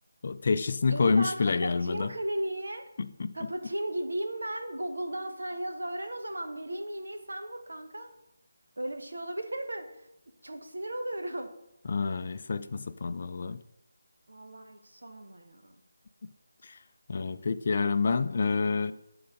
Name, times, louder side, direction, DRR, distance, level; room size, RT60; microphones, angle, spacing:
voice 1, 0.2-2.1 3.0-3.4 11.9-13.6 17.1-18.9, left 4 dB, 45° left, 0.4 m, -28 dB
voice 2, 0.9-2.8 3.3-8.1 8.8-10.1 10.4-11.5 14.3-15.8, right 1 dB, 70° right, 1.2 m, -35 dB
8.9 x 3.9 x 5.0 m
figure-of-eight pair, 155°, 0 cm